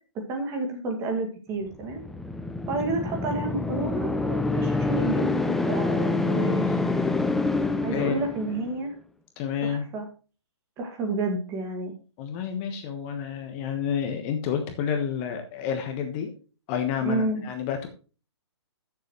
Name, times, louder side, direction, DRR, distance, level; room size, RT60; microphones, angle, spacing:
voice 1, 0.1-2.0 2.7-6.8 7.8-8.9 9.6-10.1 10.8-11.9 17.0-17.4, right 2 dB, 20° right, 3 dB, 2.1 m, -30 dB
sound 1, 1.8-8.8, left 3 dB, ahead, 0.4 m, -26 dB
voice 2, 7.9-8.2 9.4-9.8 12.2-16.3 16.7-17.9, left 8 dB, 25° left, 5 dB, 1.3 m, -29 dB
14.0 x 7.1 x 3.1 m, 0.35 s
hypercardioid pair, 155°, 15 cm